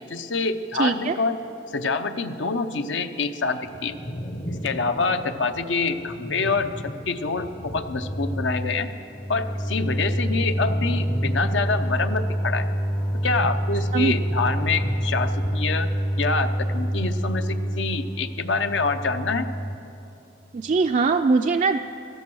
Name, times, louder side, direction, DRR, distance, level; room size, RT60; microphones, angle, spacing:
voice 1, 0.0-1.4 1.7-4.0 4.6-8.9 9.3-12.7 13.2-15.9 16.2-19.5, left 4 dB, 70° left, 9 dB, 0.8 m, -26 dB
voice 2, 0.8-1.2 13.9-14.1 20.5-21.8, right 4 dB, 40° right, 5 dB, 0.4 m, -21 dB
sound 1, 3.6-8.9 9.2-17.8 18.1-18.8, equal, 35° left, 0.9 m, -39 dB
sound 2, 7.9-19.8, equal, 15° left, 0.5 m, -27 dB
16.0 x 14.0 x 6.2 m, 2.8 s
head